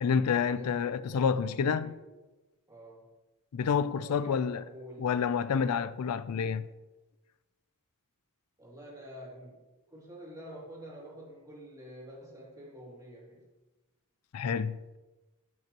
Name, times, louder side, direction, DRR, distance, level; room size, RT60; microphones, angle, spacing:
voice 1, 0.0-1.9 3.5-4.6 5.0-6.7 14.3-15.0, left 6 dB, 85° left, 0.4 m, -29 dB
voice 2, 0.5-2.0 2.7-3.1 4.0-5.1 8.6-9.6 9.9-13.4, equal, 15° right, 2.5 m, -48 dB
13.5 x 6.2 x 2.9 m
head